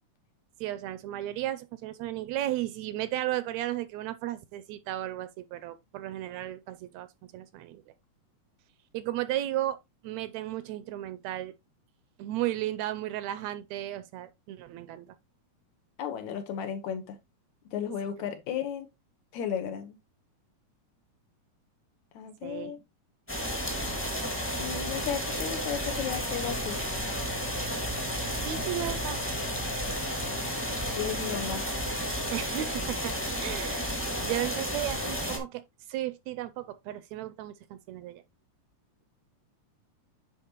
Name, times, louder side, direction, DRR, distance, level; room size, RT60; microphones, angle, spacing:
voice 1, 0.6-7.1 7.3-7.8 8.9-9.8 10.0-11.5 12.2-15.1 22.4-22.7 28.4-29.2 32.3-35.6 35.9-38.2, right 14 dB, 80° right, 1.7 m, -34 dB
voice 2, 16.0-17.2 17.7-18.9 19.3-20.0 22.1-22.8 24.6-26.8 30.9-31.6, left 8 dB, 75° left, 2.4 m, -34 dB
sound 1, 23.3-35.4, equal, 5° left, 0.9 m, -32 dB
10.0 x 3.9 x 2.9 m
omnidirectional pair, 3.4 m